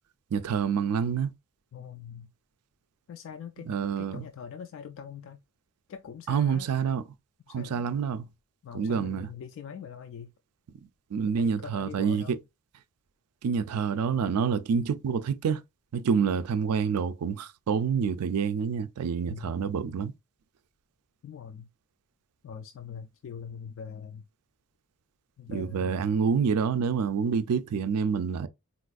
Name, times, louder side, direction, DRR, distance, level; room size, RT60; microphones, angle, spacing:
voice 1, 0.3-1.3 3.7-4.3 6.3-7.1 7.5-8.3 8.7-9.3 11.1-12.4 13.4-15.6 15.9-20.1 25.5-28.5, right 6 dB, 90° right, 0.4 m, -27 dB
voice 2, 1.7-2.3 3.1-5.4 5.9-6.7 7.5-7.9 8.6-10.3 11.4-12.4 19.3-19.5 21.2-21.7 22.4-24.2 25.4-26.1, left 7 dB, 60° left, 0.3 m, -42 dB
4.0 x 2.4 x 2.3 m
head